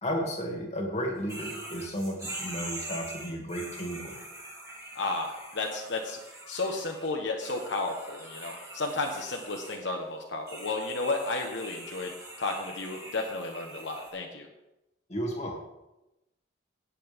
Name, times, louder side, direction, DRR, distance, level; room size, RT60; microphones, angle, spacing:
voice 1, 0.0-4.3 15.1-15.5, equal, 35° left, 0 dB, 2.4 m, -33 dB
sound 1, 1.3-7.1 7.4-9.8 10.5-14.1, right 1 dB, 15° right, 4.0 m, -43 dB
voice 2, 4.9-14.5, left 3 dB, 70° left, 1 dB, 1.2 m, -33 dB
17.0 x 7.7 x 3.6 m, 0.95 s
head